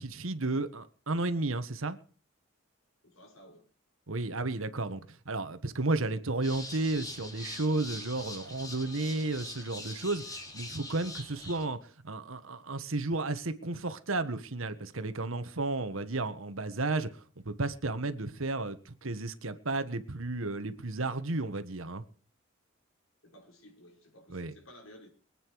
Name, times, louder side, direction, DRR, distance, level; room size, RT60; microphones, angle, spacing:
voice 1, 0.0-2.0 4.1-22.0 24.3-24.5, right 2 dB, 85° right, 1.4 m, -33 dB
voice 2, 3.0-3.7 16.0-16.1 23.2-25.1, left 1 dB, 90° left, 5.2 m, -55 dB
sound 1, 6.4-11.7, left 2 dB, 20° left, 2.8 m, -43 dB
24.0 x 9.1 x 4.8 m
head